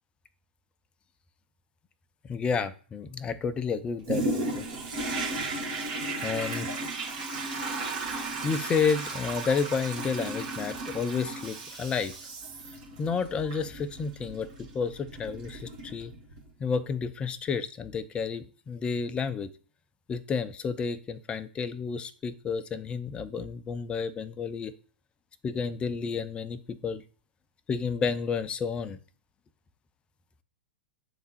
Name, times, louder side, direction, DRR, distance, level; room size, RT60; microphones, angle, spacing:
voice 1, 2.2-4.7 6.2-6.7 8.0-12.1 13.0-16.1 16.6-19.5 20.1-24.7 25.4-27.0 27.7-29.0, left 5 dB, 20° left, 12 dB, 0.5 m, -31 dB
Toilet flush, 4.0-16.5 17.0-17.1, right 2 dB, 55° right, 1.7 m, -35 dB
7.9 x 3.6 x 4.1 m, 0.40 s
figure-of-eight pair, 105°, 5 cm